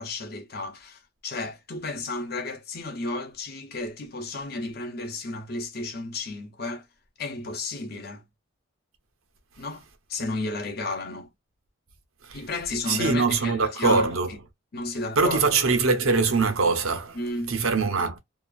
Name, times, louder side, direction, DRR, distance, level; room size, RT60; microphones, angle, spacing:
voice 1, 0.0-6.9 7.2-8.2 9.6-9.8 10.1-11.3 12.3-14.1 14.7-15.4 17.1-17.6, left 2 dB, 45° left, 0.8 m, -32 dB
voice 2, 12.9-14.3 15.2-17.2 17.5-18.2, right 4 dB, 75° right, 0.8 m, -23 dB
2.9 x 2.3 x 2.4 m
head